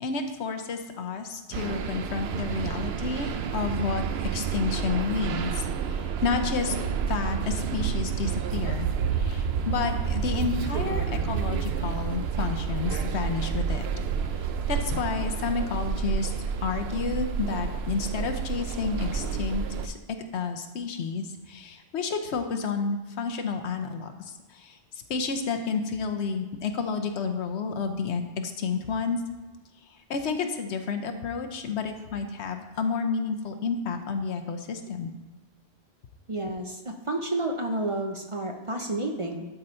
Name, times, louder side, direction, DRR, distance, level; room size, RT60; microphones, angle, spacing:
voice 1, 0.0-6.7 7.1-13.9 14.7-16.3 16.6-20.0 20.3-24.8 25.1-29.2 30.1-35.1, left 5 dB, 85° left, 6 dB, 1.1 m, -30 dB
sound 1, 1.5-19.9, right 7 dB, 70° right, 0.8 m, -29 dB
voice 2, 36.3-39.5, right 2 dB, 35° right, 3 dB, 0.6 m, -30 dB
11.5 x 4.0 x 4.4 m, 1.2 s
omnidirectional pair, 1.1 m